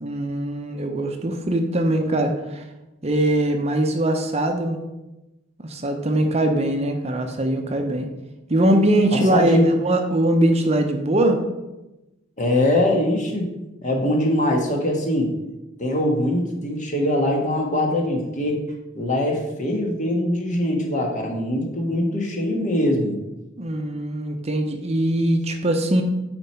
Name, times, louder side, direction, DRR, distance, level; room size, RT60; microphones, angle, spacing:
voice 1, 0.0-2.6 3.0-4.8 5.6-8.1 8.5-11.4 23.6-26.0, right 1 dB, 35° right, 5 dB, 0.7 m, -21 dB
voice 2, 9.1-9.7 12.4-13.5 13.8-15.3 15.8-18.6 18.9-23.2, left 1 dB, 40° left, 1 dB, 1.4 m, -22 dB
9.3 x 4.5 x 4.4 m, 1.0 s
head